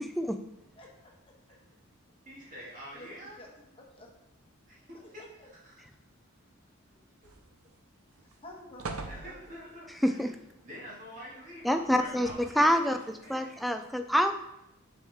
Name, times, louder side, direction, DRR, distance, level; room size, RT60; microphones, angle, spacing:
voice 1, 0.8-1.1 1.5-1.6 2.9-3.1 3.4-4.1 5.2-5.5 8.4-9.3 10.1-10.2, left 1 dB, 25° left, -1 dB, 1.1 m, -50 dB
voice 2, 2.3-3.4 4.7-5.8 9.1-10.2 10.6-13.6, equal, 35° right, -6 dB, 2.2 m, -46 dB
sound 1, 7.2-7.8 8.2-8.3 8.8-9.8 11.9-12.7 13.5-13.6, right 3 dB, 85° right, 0.7 m, -42 dB
voice 3, 11.6-12.3 12.6-13.0 13.3-14.3, equal, ahead, 6 dB, 0.3 m, -26 dB
7.0 x 4.7 x 3.6 m, 0.86 s
head